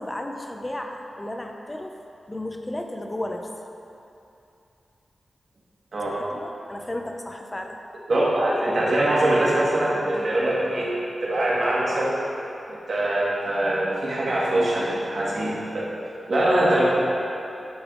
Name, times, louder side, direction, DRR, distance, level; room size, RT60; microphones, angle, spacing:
voice 1, 0.0-2.0 2.3-3.5 6.3-7.8, left 1 dB, 20° left, 3 dB, 0.6 m, -33 dB
voice 2, 8.1-10.9 11.2-12.2 12.7-15.9 16.3-16.8, right 1 dB, 65° right, -6 dB, 1.4 m, -23 dB
9.9 x 3.4 x 3.7 m, 2.8 s
wide cardioid pair, 70°, 0 cm